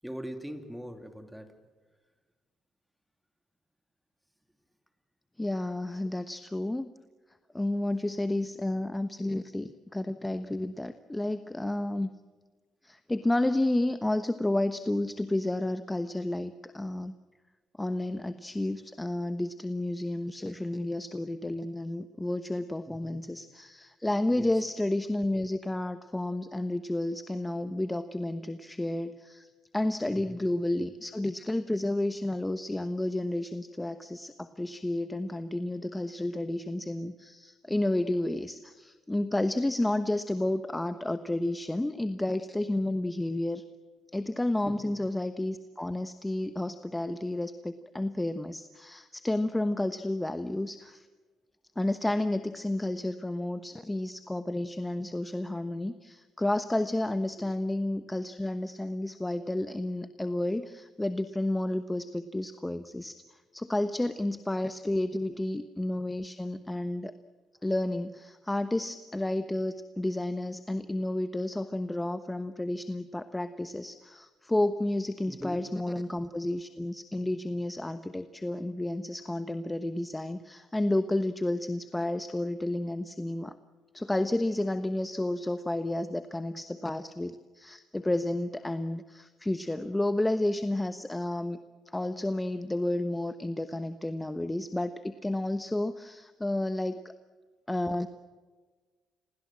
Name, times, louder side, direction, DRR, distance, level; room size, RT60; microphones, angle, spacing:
voice 1, 0.0-1.6 22.9-23.2 24.3-24.5 30.1-30.4 44.6-45.0 57.4-57.5 65.3-65.4 75.3-75.6, equal, 5° right, 7 dB, 2.8 m, -42 dB
voice 2, 5.4-6.9 7.5-12.1 12.8-17.1 17.8-29.5 29.7-43.6 44.1-51.1 51.8-63.2 63.5-67.1 67.6-83.5 83.9-91.6 91.9-97.1 97.7-98.1, left 1 dB, 10° left, 10 dB, 1.2 m, -31 dB
28.5 x 21.5 x 7.6 m, 1.4 s
supercardioid pair, 65°, 0 cm